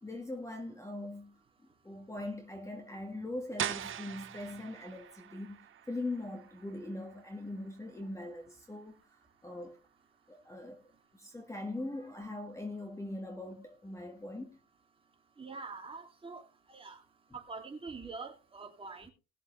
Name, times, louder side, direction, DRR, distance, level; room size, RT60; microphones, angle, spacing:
voice 1, 0.0-1.4 1.8-9.0 9.4-9.8 10.3-10.8 11.1-14.6, left 2 dB, 10° left, 1.8 m, -41 dB
sound 1, 3.6-9.2, right 10 dB, 45° right, 1.3 m, -43 dB
voice 2, 15.4-17.0 17.3-19.1, right 4 dB, 20° right, 2.8 m, -45 dB
19.5 x 7.2 x 3.3 m
supercardioid pair, 105°, 30 cm